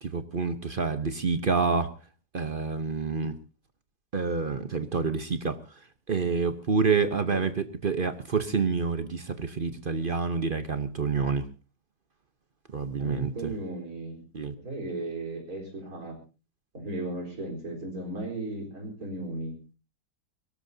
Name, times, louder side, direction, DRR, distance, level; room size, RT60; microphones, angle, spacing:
voice 1, 0.0-1.9 2.3-3.4 4.1-5.6 6.1-11.5 12.7-13.5 14.3-14.5, right 5 dB, 40° right, 11 dB, 0.8 m, -28 dB
voice 2, 13.0-14.2 14.6-16.1 16.7-19.6, right 2 dB, 55° right, 2 dB, 4.7 m, -35 dB
22.5 x 18.0 x 2.7 m, 0.32 s
omnidirectional pair, 1.8 m